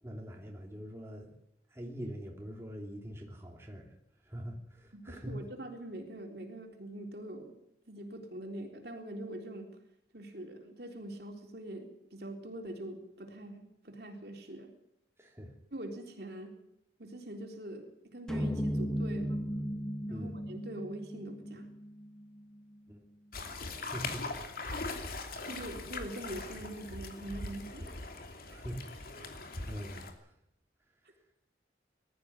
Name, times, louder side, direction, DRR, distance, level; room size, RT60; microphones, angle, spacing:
voice 1, 0.0-1.3 1.7-3.9 4.2-5.4 15.2-15.5 20.1-20.4 22.9-23.0 23.8-24.3 28.5-28.8 29.7-30.3, equal, 15° right, 0 dB, 3.3 m, -43 dB
voice 2, 4.9-7.5 7.9-9.7 10.1-14.7 15.7-16.6 17.0-19.4 20.1-21.7 24.9-25.1 25.5-28.0, right 1 dB, 60° right, 3 dB, 3.8 m, -43 dB
sound 1, 18.3-22.6, equal, 5° left, 1.1 m, -36 dB
sound 2, 23.3-30.1, left 3 dB, 55° left, 2.8 m, -41 dB
21.0 x 14.0 x 9.7 m, 0.78 s
head